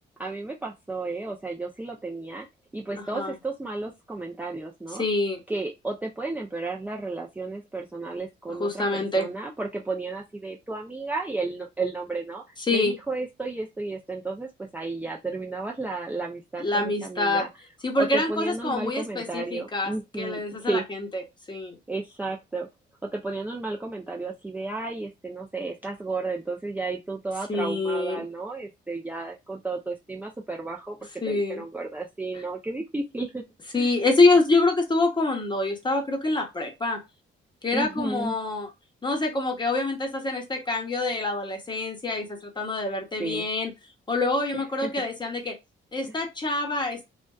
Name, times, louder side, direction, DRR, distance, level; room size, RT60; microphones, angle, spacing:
voice 1, 0.2-2.5 2.7-5.1 5.5-12.4 12.7-17.5 18.0-20.8 21.9-22.7 23.1-33.4 33.7-33.9 37.7-38.4 43.2-43.5 44.5-44.9, right 3 dB, 10° right, -2 dB, 0.4 m, -33 dB
voice 2, 5.0-5.4 8.6-9.3 12.7-12.9 16.6-17.4 17.8-19.9 20.2-21.2 21.5-21.8 27.5-28.2 31.2-31.6 33.7-37.0 37.6-38.7 39.0-43.7 44.1-45.5 45.9-47.0, left 2 dB, 25° left, 3 dB, 0.9 m, -25 dB
2.5 x 2.2 x 2.3 m, 0.22 s
cardioid pair, 90°, 20 cm